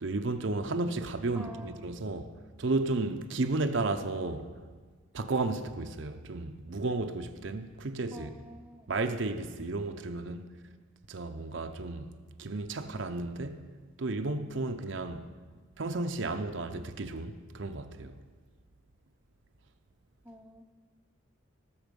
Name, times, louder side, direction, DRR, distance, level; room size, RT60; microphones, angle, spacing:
voice 1, 0.0-2.3 2.6-4.5 5.1-8.3 8.9-10.4 11.1-12.1 12.4-13.6 14.0-15.3 15.8-18.1, right 3 dB, 60° right, 0.6 m, -33 dB
voice 2, 1.3-2.0 8.1-8.9 20.2-20.6, right 1 dB, 5° right, 0.7 m, -48 dB
18.0 x 7.2 x 5.3 m
head